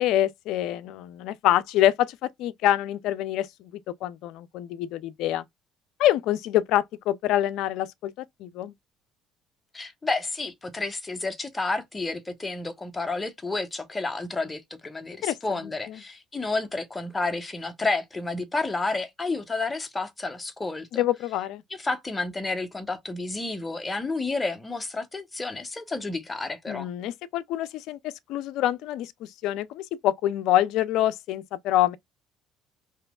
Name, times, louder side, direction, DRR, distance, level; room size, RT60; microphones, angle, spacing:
voice 1, 0.0-3.7 4.0-5.4 6.0-8.7 15.2-16.0 20.9-21.6 26.7-32.0, left 13 dB, 75° left, 0.4 m, -26 dB
voice 2, 9.7-21.0 21.7-26.9, left 3 dB, 20° left, 0.9 m, -30 dB
3.2 x 2.9 x 2.3 m
supercardioid pair, 80°, 0 cm